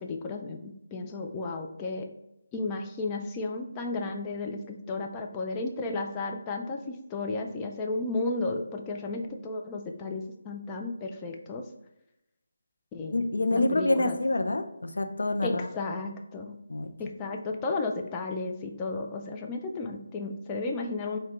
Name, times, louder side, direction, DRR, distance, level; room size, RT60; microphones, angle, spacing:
voice 1, 0.0-2.1 2.5-11.6 12.9-14.2 15.4-16.6 17.0-21.2, left 3 dB, 15° left, 3 dB, 0.3 m, -33 dB
voice 2, 13.1-15.7 16.7-16.9, left 2 dB, 80° left, 7 dB, 0.5 m, -27 dB
4.6 x 2.2 x 3.6 m, 0.87 s
figure-of-eight pair, 170°, 0 cm